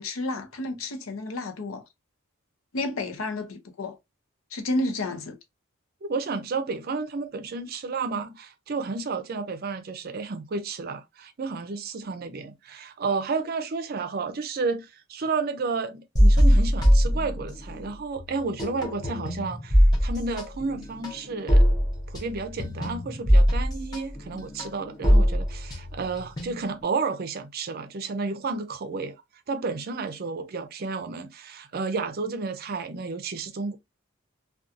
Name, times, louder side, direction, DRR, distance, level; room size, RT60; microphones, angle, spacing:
voice 1, 0.0-1.8 2.7-4.0 4.5-5.4, left 2 dB, 85° left, 0.6 m, -31 dB
voice 2, 6.0-21.7 22.1-29.2 29.5-33.8, right 4 dB, 45° right, 0.4 m, -31 dB
sound 1, 16.2-17.9 18.2-26.8, equal, 20° left, 0.6 m, -22 dB
2.5 x 2.3 x 2.5 m
head